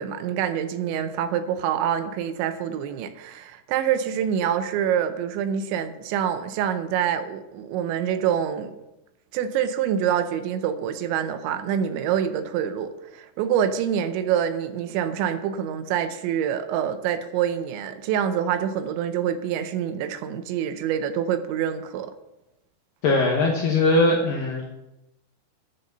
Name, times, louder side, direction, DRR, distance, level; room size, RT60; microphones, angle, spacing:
voice 1, 0.0-8.8 9.3-22.1, right 9 dB, 80° right, 10 dB, 2.9 m, -26 dB
voice 2, 23.0-24.7, left 2 dB, 75° left, 1 dB, 2.1 m, -20 dB
11.0 x 6.8 x 6.7 m, 0.95 s
omnidirectional pair, 5.4 m